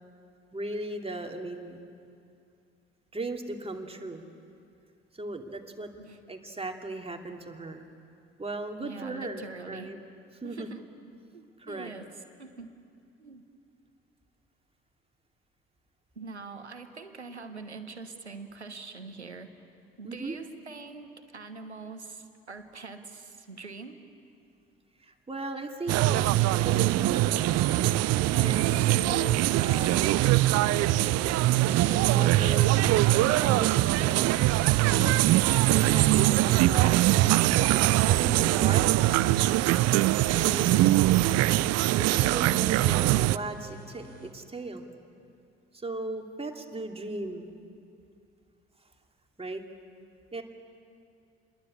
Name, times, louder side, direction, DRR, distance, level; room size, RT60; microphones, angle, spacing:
voice 1, 0.5-1.8 3.1-4.2 5.1-5.9 6.3-7.9 8.4-10.0 10.4-10.7 11.6-11.9 20.0-20.4 25.0-27.8 28.3-30.2 31.6-34.4 35.0-35.1 35.7-37.0 37.7-38.8 39.1-39.2 40.3-40.8 42.0-44.8 45.7-47.5 49.4-49.6 50.3-50.4, right 2 dB, 20° right, 3 dB, 2.7 m, -37 dB
voice 2, 8.8-10.0 10.4-10.8 11.3-12.7 13.2-13.4 16.1-19.5 20.0-24.0, right 4 dB, 90° right, 8 dB, 1.2 m, -43 dB
sound 1, 25.9-43.4, right 16 dB, 50° right, 0.6 m, -22 dB
sound 2, 27.3-44.3, left 1 dB, 25° left, 5.1 m, -46 dB
28.5 x 22.0 x 8.5 m, 2.5 s
figure-of-eight pair, 50°, 32 cm